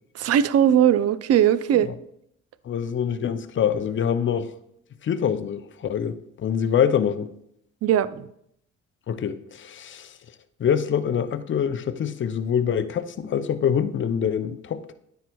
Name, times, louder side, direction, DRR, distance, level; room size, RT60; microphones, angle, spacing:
voice 1, 0.2-1.9 7.8-8.3, right 10 dB, 50° right, 16 dB, 0.4 m, -19 dB
voice 2, 2.7-4.5 5.0-7.3 9.1-10.1 10.6-14.9, left 8 dB, 40° left, 11 dB, 0.5 m, -25 dB
9.6 x 4.6 x 2.3 m, 0.73 s
supercardioid pair, 60°, 32 cm